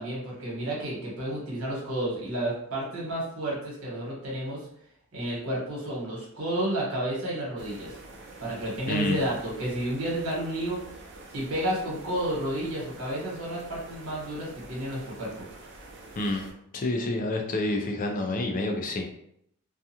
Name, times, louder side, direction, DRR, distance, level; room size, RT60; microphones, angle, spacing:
voice 1, 0.0-4.7 5.1-8.0 8.4-10.8 11.3-15.3, right 1 dB, 75° right, -4 dB, 1.2 m, -31 dB
sound 1, 7.6-16.5, right 2 dB, 55° right, 0.5 m, -47 dB
voice 2, 8.9-9.2 16.2-16.5 16.7-19.0, left 2 dB, 40° left, 2 dB, 0.4 m, -28 dB
2.4 x 2.3 x 2.7 m, 0.72 s
head